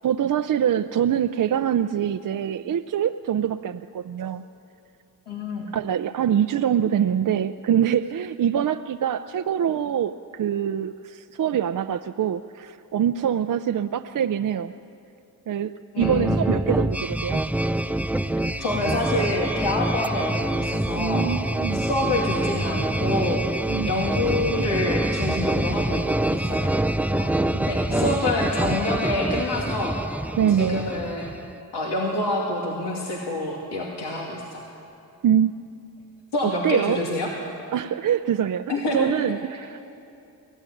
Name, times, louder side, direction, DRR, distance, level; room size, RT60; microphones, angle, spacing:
voice 1, 0.0-4.4 5.7-14.7 15.5-17.4 21.0-21.9 23.7-23.9 27.9-28.2 30.4-30.8 35.2-35.5 36.4-37.0 37.7-39.8, right 9 dB, 55° right, 8 dB, 0.6 m, -24 dB
voice 2, 5.3-5.7 15.9-16.4 18.6-21.3 21.7-23.4 23.9-26.0 26.3-26.7 27.1-27.3 27.6-30.0 30.5-31.3 31.7-34.6 36.3-37.3 38.7-39.1, left 2 dB, 85° left, -2 dB, 2.5 m, -27 dB
sound 1, 16.0-31.5, right 1 dB, 5° right, 0.4 m, -26 dB
23.0 x 15.0 x 9.9 m, 2.8 s
cardioid pair, 60°, 39 cm